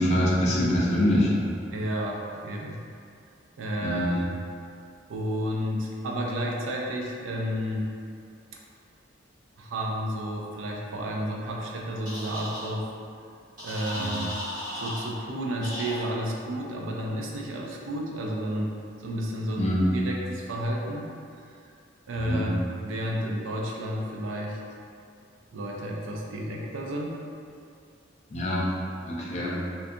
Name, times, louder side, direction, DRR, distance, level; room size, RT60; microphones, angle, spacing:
voice 1, 0.0-1.6 3.8-4.1 13.9-14.2 19.6-20.0 22.2-22.5 28.3-28.7 29.1-29.6, equal, 35° left, -5 dB, 0.4 m, -25 dB
voice 2, 1.7-2.8 3.6-4.3 5.1-7.9 9.6-12.9 13.6-14.3 14.7-18.8 19.0-21.1 21.4-21.5 22.1-24.6 25.5-27.2, equal, 85° right, -1 dB, 0.4 m, -31 dB
sound 1, 12.1-12.7 13.6-15.1 15.6-16.0, left 1 dB, 45° right, 1.0 m, -35 dB
2.5 x 2.2 x 2.6 m, 2.4 s
head